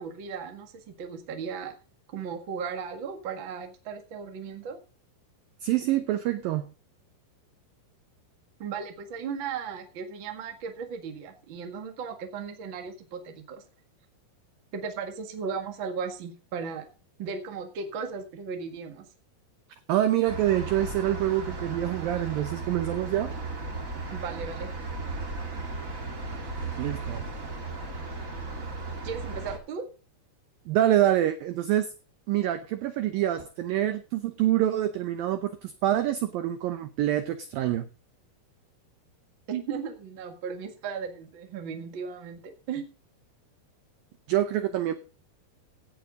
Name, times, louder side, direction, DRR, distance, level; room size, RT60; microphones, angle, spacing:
voice 1, 0.0-1.7 2.1-4.8 8.6-13.6 14.7-16.9 17.2-19.1 24.1-24.7 29.0-29.9 39.5-42.9, right 6 dB, 50° right, 5 dB, 1.4 m, -36 dB
voice 2, 5.6-6.7 19.9-23.3 26.8-27.2 30.7-31.9 32.3-37.9 44.3-44.9, right 12 dB, 80° right, 10 dB, 2.1 m, -26 dB
sound 1, 20.3-29.6, right 3 dB, 35° right, 1.3 m, -36 dB
17.0 x 6.4 x 5.3 m, 0.36 s
omnidirectional pair, 5.1 m